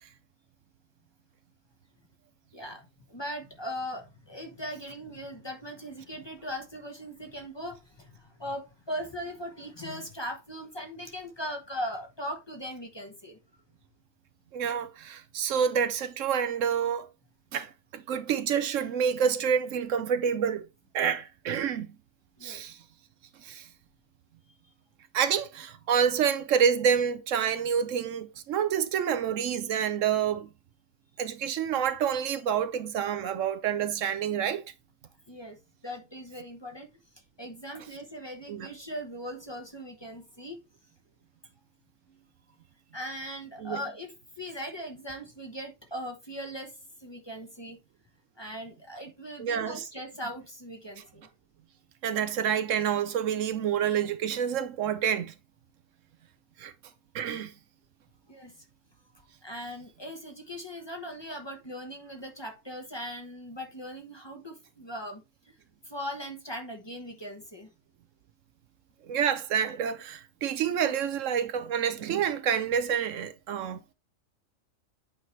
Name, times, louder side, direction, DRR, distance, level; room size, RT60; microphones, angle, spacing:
voice 1, 2.5-13.4 22.4-22.6 24.6-24.7 35.3-36.9 37.4-40.6 42.1-42.2 42.9-47.8 48.4-51.3 58.3-58.6 59.1-65.6 65.8-67.7, equal, 20° left, 1.1 m, -39 dB
voice 2, 14.5-17.1 17.5-20.6 20.9-21.9 22.4-22.8 23.4-23.7 25.1-30.5 31.2-34.6 38.5-38.7 43.6-43.8 49.4-49.8 52.0-55.3 56.6-56.7 57.1-57.5 69.1-73.8, right 8 dB, 75° right, 1.0 m, -28 dB
8.3 x 4.9 x 3.1 m
omnidirectional pair, 1.4 m